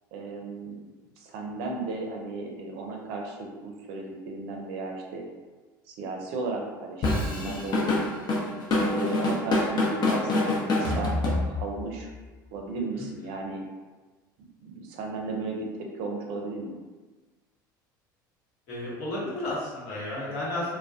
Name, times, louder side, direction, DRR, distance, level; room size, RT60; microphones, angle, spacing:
voice 1, 0.1-0.8 1.2-5.2 5.9-8.0 8.7-12.1 12.5-13.6 14.7-16.7, right 3 dB, 60° right, 1 dB, 0.5 m, -35 dB
Drum kit / Drum, 7.0-11.8, left 2 dB, 40° left, 0.6 m, -25 dB
voice 2, 18.7-20.8, left 1 dB, 60° left, -7 dB, 1.1 m, -32 dB
2.2 x 2.1 x 2.6 m, 1.3 s
hypercardioid pair, 75°, 11 cm